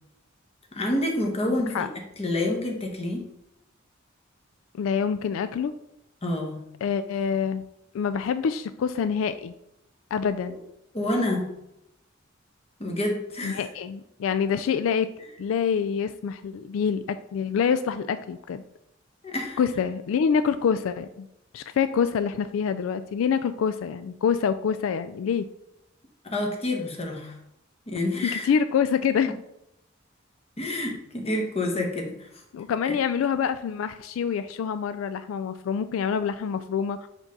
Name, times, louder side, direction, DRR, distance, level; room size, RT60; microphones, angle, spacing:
voice 1, 0.7-1.9 2.2-3.3 6.2-6.6 10.4-10.6 10.9-11.5 12.8-13.6 19.2-19.6 26.2-27.4 27.9-28.5 30.6-32.4, left 1 dB, 30° left, 1 dB, 1.1 m, -28 dB
voice 2, 4.7-5.7 6.8-7.6 7.9-9.5 10.1-10.6 13.4-15.1 15.4-18.6 19.6-21.3 21.5-25.5 28.3-29.3 32.5-37.1, left 7 dB, 85° left, 11 dB, 0.3 m, -26 dB
4.9 x 3.7 x 5.3 m, 0.82 s
head